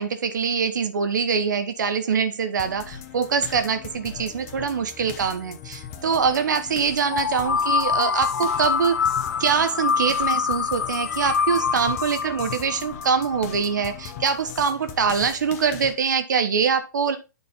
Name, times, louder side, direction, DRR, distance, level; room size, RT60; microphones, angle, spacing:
voice 1, 0.0-9.1 9.4-17.2, right 6 dB, 70° right, 9 dB, 1.0 m, -24 dB
sound 1, 2.6-15.9, left 8 dB, 45° left, 1.1 m, -39 dB
sound 2, 7.1-13.9, left 6 dB, 75° left, 0.4 m, -25 dB
8.9 x 4.1 x 4.1 m, 0.28 s
hypercardioid pair, 125°, 10 cm